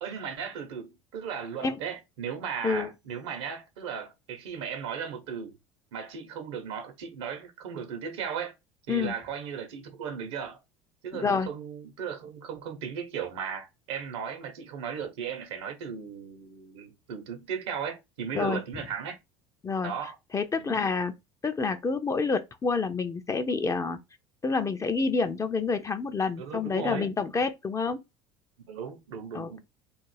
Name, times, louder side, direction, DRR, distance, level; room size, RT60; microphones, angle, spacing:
voice 1, 0.0-5.5 5.9-8.6 8.9-10.6 11.0-19.2 19.8-20.2 20.5-20.7 26.4-27.1 28.7-29.6, right 7 dB, 75° right, 0.8 m, -36 dB
voice 2, 11.1-11.5 18.3-18.6 19.6-19.9 20.3-21.1 21.4-24.0 24.4-28.0 29.3-29.6, left 4 dB, 20° left, 0.4 m, -28 dB
2.4 x 2.0 x 3.2 m
hypercardioid pair, 70°, 15 cm